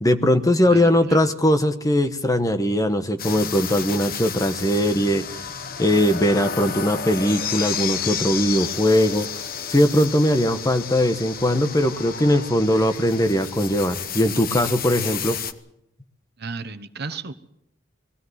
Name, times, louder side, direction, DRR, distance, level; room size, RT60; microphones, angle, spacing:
voice 1, 0.0-5.4 5.8-9.3 9.7-15.4, left 1 dB, 15° left, 8 dB, 1.1 m, -20 dB
voice 2, 0.7-1.2 16.4-17.3, right 4 dB, 55° right, 10 dB, 1.1 m, -34 dB
sound 1, 3.2-15.5, left 7 dB, 45° left, 1.0 m, -31 dB
21.5 x 16.5 x 8.0 m, 0.78 s
head